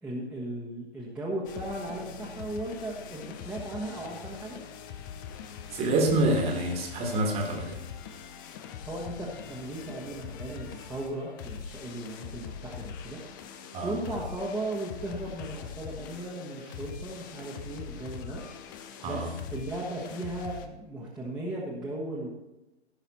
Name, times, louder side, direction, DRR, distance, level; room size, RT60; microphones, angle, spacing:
voice 1, 0.0-4.6 8.8-13.2 13.8-18.4 19.0-22.3, right 1 dB, 5° right, -6 dB, 1.2 m, -36 dB
sound 1, 1.4-20.7, left 7 dB, 20° left, 0.5 m, -43 dB
voice 2, 5.7-7.8 13.7-13.9 19.0-19.3, right 1 dB, 20° right, 2 dB, 1.6 m, -27 dB
16.0 x 5.6 x 4.3 m, 0.97 s
figure-of-eight pair, 125°, 33 cm